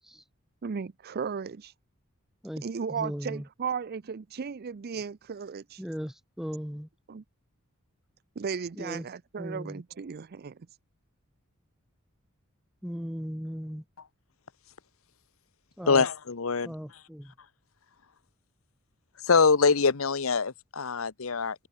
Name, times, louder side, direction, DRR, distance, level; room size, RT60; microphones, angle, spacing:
voice 1, 0.6-1.7 2.6-5.8 7.1-7.2 8.4-10.5, right 6 dB, 45° right, 0.5 m, -35 dB
voice 2, 2.9-3.4 5.8-6.9 8.8-9.0 9.4-9.8 12.8-13.8 15.8-16.1 16.6-17.3, equal, ahead, 1.2 m, -37 dB
voice 3, 15.9-16.7 19.2-21.7, left 4 dB, 75° left, 0.9 m, -24 dB
head